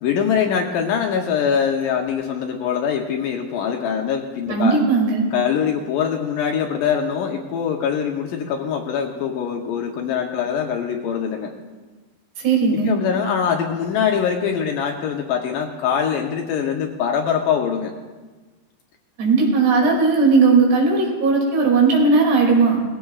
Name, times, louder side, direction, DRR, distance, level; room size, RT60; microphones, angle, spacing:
voice 1, 0.0-4.8 5.3-11.5 12.8-17.9, left 7 dB, 75° left, 2 dB, 2.2 m, -23 dB
voice 2, 4.5-5.3 12.4-12.9 19.2-22.8, right 4 dB, 85° right, -1 dB, 4.6 m, -17 dB
20.5 x 15.0 x 2.4 m, 1.3 s
omnidirectional pair, 4.5 m